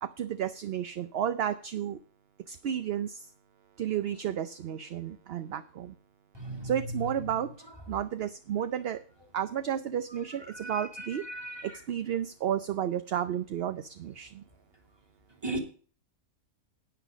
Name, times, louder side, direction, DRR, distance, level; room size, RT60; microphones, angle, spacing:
voice 1, 0.0-2.0 2.5-3.3 3.8-5.9 6.6-7.5 7.9-9.0 9.3-11.2 11.6-14.4, right 10 dB, 60° right, 0.8 m, -32 dB
voice 2, 6.3-7.3 7.7-7.8 10.1-11.8 15.3-15.6, right 1 dB, 20° right, 2.5 m, -38 dB
10.0 x 9.2 x 5.0 m
omnidirectional pair, 1.3 m